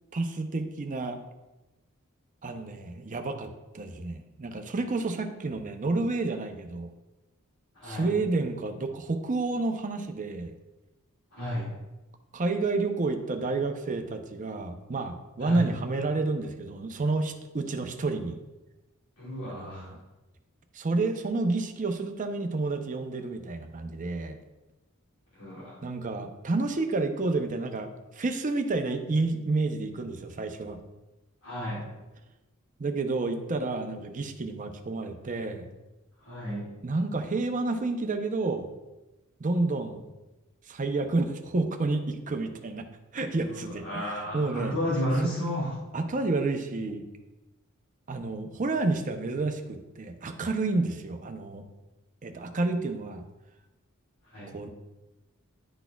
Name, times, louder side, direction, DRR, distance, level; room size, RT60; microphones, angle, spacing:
voice 1, 0.1-1.2 2.4-6.9 7.8-10.5 12.3-18.4 19.5-20.0 20.7-24.4 25.8-30.8 32.8-35.7 36.8-38.7 39.4-40.0 40.7-42.8 43.1-44.8 45.2-45.3 45.9-47.1 48.1-51.6 52.2-53.2 54.5-54.7, right 3 dB, 35° right, 6 dB, 0.6 m, -30 dB
voice 2, 7.8-8.1 11.3-11.7 15.4-15.7 19.2-19.9 25.4-25.7 31.4-31.8 36.2-36.7 43.6-45.7 54.3-54.5, equal, 90° left, -9 dB, 2.0 m, -32 dB
11.0 x 4.2 x 2.3 m, 1.1 s
head